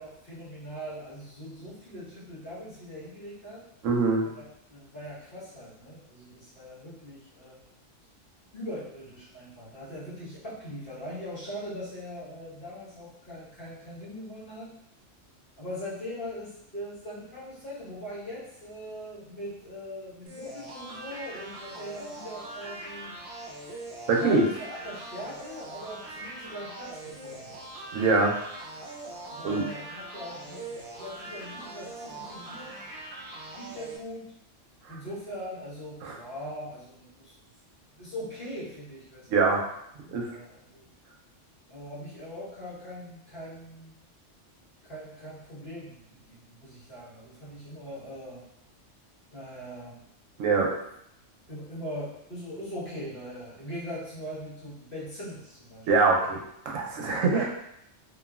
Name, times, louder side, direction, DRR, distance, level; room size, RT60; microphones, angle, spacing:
voice 1, 0.0-3.6 4.2-7.6 8.5-14.7 15.6-23.1 24.1-27.6 29.3-32.8 33.5-34.3 34.9-37.3 37.9-39.5 40.0-40.9 41.7-44.0 44.9-48.5 49.3-50.0 51.5-55.9 56.2-56.3 57.3-57.5, equal, 45° left, -9 dB, 1.3 m, -41 dB
voice 2, 3.8-4.3 24.1-24.4 27.9-28.3 29.4-29.6 36.0-36.2 39.3-39.6 40.1-40.3 50.4-50.7 55.9-56.4 56.7-57.5, right 4 dB, 90° right, 0 dB, 0.9 m, -23 dB
sound 1, 20.3-34.0, right 2 dB, 60° right, 0.6 m, -42 dB
3.0 x 2.3 x 2.3 m, 0.77 s
omnidirectional pair, 1.3 m